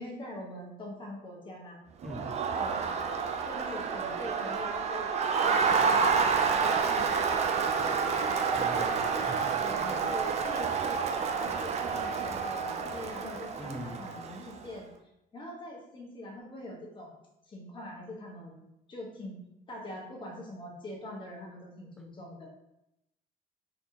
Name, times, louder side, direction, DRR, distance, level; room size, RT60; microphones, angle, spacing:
voice 1, 0.0-1.8 2.6-3.0 3.4-5.1 5.5-7.3 7.8-8.0 8.5-14.9 15.3-17.1 17.5-18.6 18.9-19.4 19.7-22.5, left 1 dB, 30° left, -1 dB, 1.3 m, -44 dB
Crowd, 2.0-14.6, right 5 dB, 40° right, 0.5 m, -29 dB
voice 2, 8.6-9.5 13.6-14.0, equal, 5° left, 3 dB, 0.6 m, -40 dB
4.1 x 3.4 x 2.9 m, 0.87 s
cardioid pair, 110°, 17 cm